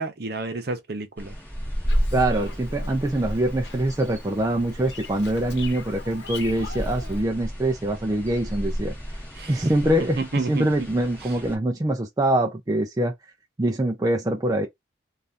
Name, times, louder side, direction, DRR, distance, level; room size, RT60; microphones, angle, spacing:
voice 1, 0.0-1.3 9.3-9.7 10.2-10.9 11.2-11.4, right 3 dB, 55° right, 0.7 m, -31 dB
sound 1, 1.2-11.6, equal, 10° left, 1.1 m, -32 dB
Bird vocalization bird call bird song, 1.9-7.2, left 4 dB, 60° left, 1.0 m, -43 dB
voice 2, 2.1-8.9 9.5-10.2 10.5-13.1 13.6-14.7, right 1 dB, 20° right, 0.4 m, -24 dB
2.6 x 2.5 x 3.4 m
head